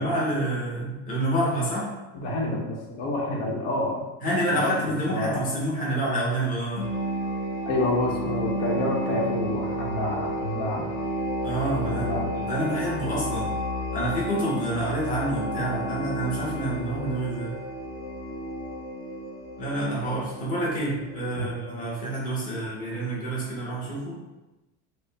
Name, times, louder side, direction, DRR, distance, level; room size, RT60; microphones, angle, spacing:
voice 1, 0.0-1.9 4.2-6.9 11.4-13.5 13.9-17.5 19.6-24.2, right 1 dB, 20° left, -7 dB, 0.9 m, -28 dB
voice 2, 2.1-4.0 4.5-5.4 7.7-10.9 11.9-12.3 21.4-21.5, left 1 dB, 75° left, -2 dB, 1.0 m, -28 dB
sound 1, 6.8-22.2, equal, 45° left, 0.9 m, -32 dB
4.9 x 2.1 x 3.3 m, 1.0 s
cardioid pair, 180°, 39 cm